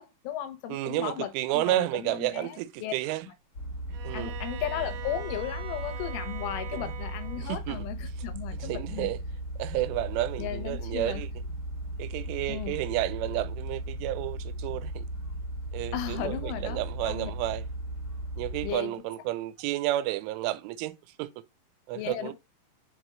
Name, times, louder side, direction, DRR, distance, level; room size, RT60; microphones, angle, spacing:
voice 1, 0.0-2.9 3.3-3.4 4.1-9.1 10.4-11.2 12.5-12.7 15.9-16.8 17.1-17.3 18.6-18.9 21.9-22.3, left 11 dB, 85° left, 3.5 m, -36 dB
voice 2, 0.7-3.2 4.0-4.3 6.7-6.8 7.4-7.8 8.6-9.2 9.6-11.3 12.0-15.0 15.7-17.6 18.4-20.9 21.2-21.3 21.9-22.3, right 15 dB, 90° right, 3.1 m, -31 dB
sound 1, 3.5-18.7, right 1 dB, 55° left, 1.5 m, -36 dB
Bowed string instrument, 3.9-7.6, right 9 dB, 65° right, 2.8 m, -42 dB
7.1 x 5.0 x 3.7 m
omnidirectional pair, 5.4 m